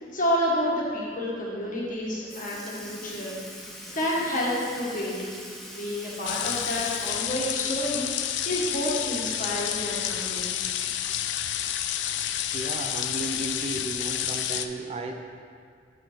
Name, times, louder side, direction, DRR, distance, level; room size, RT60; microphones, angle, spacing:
voice 1, 0.1-3.3 3.9-5.3 5.7-10.5, left 1 dB, 45° left, -5 dB, 1.5 m, -29 dB
Sink (filling or washing) / Liquid, 1.9-2.0 2.3-8.4 8.7-8.8 10.4-10.5 11.4-11.5 12.3-12.6 13.4-13.5, equal, ahead, 0.7 m, -43 dB
sound 1, 6.2-14.7, left 10 dB, 75° left, 0.3 m, -30 dB
voice 2, 12.5-15.2, right 2 dB, 35° right, 4 dB, 0.4 m, -34 dB
7.6 x 4.9 x 3.8 m, 2.2 s
head